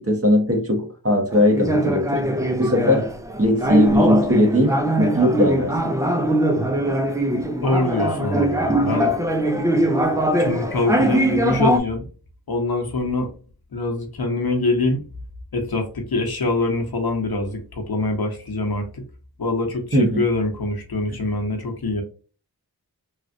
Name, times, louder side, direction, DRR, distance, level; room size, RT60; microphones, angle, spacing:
voice 1, 0.0-2.2 2.6-3.1 3.4-5.7 19.9-20.2, left 1 dB, 35° right, 1 dB, 1.1 m, -19 dB
sound 1, 1.3-11.8, right 1 dB, 10° right, 0.4 m, -21 dB
voice 2, 7.6-9.1 10.4-12.1 12.5-13.3 13.7-15.0 15.5-19.0 19.4-22.0, left 2 dB, 65° left, 2 dB, 1.0 m, -24 dB
3.2 x 2.4 x 2.5 m, 0.36 s
wide cardioid pair, 55°, 39 cm